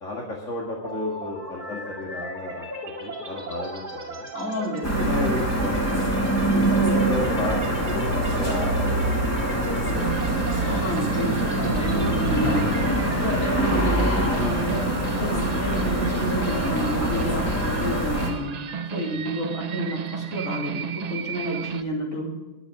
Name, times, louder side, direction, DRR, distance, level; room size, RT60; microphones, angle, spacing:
voice 1, 0.0-2.7 3.0-4.3 5.0-10.1 11.2-11.6 19.1-19.2, left 1 dB, 65° left, -3 dB, 2.3 m, -33 dB
sound 1, 0.8-18.6, right 1 dB, 35° right, 2.5 m, -38 dB
voice 2, 4.3-5.1 6.3-7.0 10.6-12.8 13.2-14.9 15.2-22.3, equal, 85° left, -3 dB, 4.8 m, -30 dB
sound 2, 4.8-18.3, right 1 dB, 10° left, 2.8 m, -24 dB
sound 3, 9.9-21.8, right 7 dB, 55° right, 0.4 m, -32 dB
22.5 x 8.0 x 3.8 m, 1.2 s
omnidirectional pair, 1.4 m